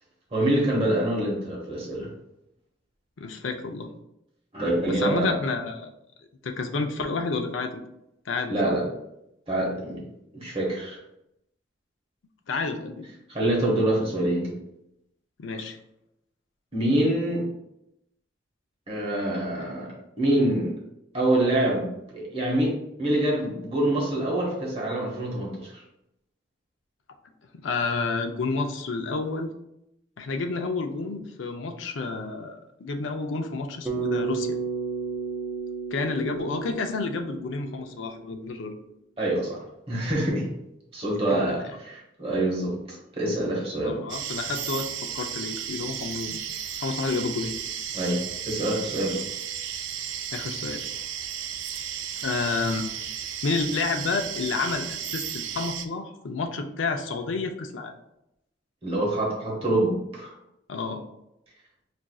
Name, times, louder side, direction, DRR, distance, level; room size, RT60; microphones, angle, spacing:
voice 1, 0.3-2.1 4.5-5.4 8.5-8.9 9.5-10.0 10.3-11.0 13.3-14.5 16.7-17.4 18.9-19.9 20.2-20.7 21.1-25.8 39.2-40.5 40.9-42.8 43.1-44.0 47.9-49.2 58.8-60.3, right 1 dB, 30° right, -3 dB, 1.0 m, -25 dB
voice 2, 3.2-3.9 4.9-5.9 6.4-7.8 8.3-8.7 12.5-13.0 15.4-15.8 27.5-29.5 30.2-34.6 35.9-38.7 41.3-41.6 43.8-44.9 45.1-46.4 46.8-47.5 50.3-50.8 52.2-52.8 53.4-57.9 60.7-61.0, left 4 dB, 85° left, 5 dB, 0.5 m, -30 dB
Bass guitar, 33.9-38.2, right 5 dB, 10° right, 0.5 m, -32 dB
sound 1, 44.1-55.9, right 9 dB, 85° right, 0.4 m, -34 dB
6.0 x 2.5 x 2.3 m, 0.83 s
head